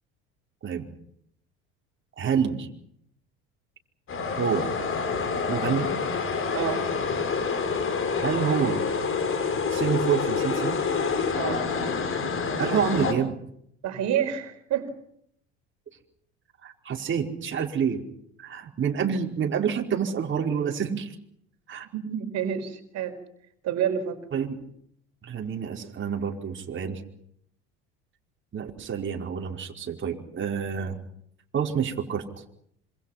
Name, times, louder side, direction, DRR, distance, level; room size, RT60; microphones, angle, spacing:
voice 1, 2.2-2.7 4.4-4.7 5.5-5.9 8.2-8.8 9.7-10.8 12.6-13.3 16.6-18.0 18.4-21.2 21.7-21.9 24.3-24.6 25.2-27.0 28.5-31.0 31.5-32.2, right 7 dB, 35° right, 1 dB, 4.9 m, -28 dB
sound 1, 4.1-13.1, left 5 dB, 40° left, 6.8 m, -27 dB
voice 2, 11.3-11.6 13.8-14.9 21.9-23.2 23.6-24.2, right 9 dB, 55° right, 6 dB, 4.9 m, -28 dB
27.0 x 26.5 x 5.9 m, 0.71 s
hypercardioid pair, 75°, 32 cm